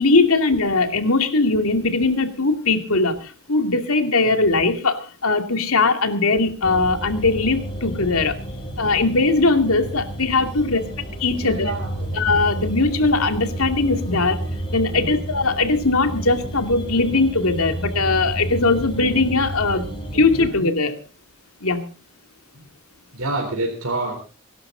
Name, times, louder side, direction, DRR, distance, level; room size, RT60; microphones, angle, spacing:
voice 1, 0.0-8.3 8.8-10.8 11.2-11.7 12.2-14.4 14.7-19.9 20.1-21.0 21.6-21.8, left 3 dB, 70° left, 7 dB, 2.5 m, -20 dB
sound 1, 6.6-20.5, right 1 dB, 25° left, 3.3 m, -31 dB
voice 2, 10.3-12.1 14.1-14.2 14.8-15.2 20.1-20.6 22.5-22.6 23.1-24.2, right 2 dB, 70° right, 2 dB, 3.8 m, -30 dB
23.0 x 12.5 x 4.0 m, 0.36 s
head